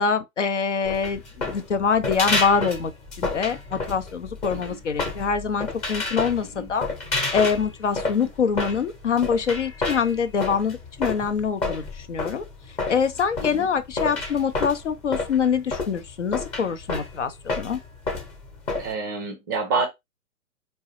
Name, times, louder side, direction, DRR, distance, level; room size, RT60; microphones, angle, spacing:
voice 1, 0.0-2.9 3.2-6.9 7.3-17.8, left 6 dB, 60° left, 0.8 m, -25 dB
sound 1, 0.8-18.9, left 3 dB, 15° left, 1.0 m, -30 dB
voice 2, 18.8-19.9, right 4 dB, 15° right, 0.5 m, -28 dB
4.5 x 3.0 x 3.2 m
figure-of-eight pair, 120°, 41 cm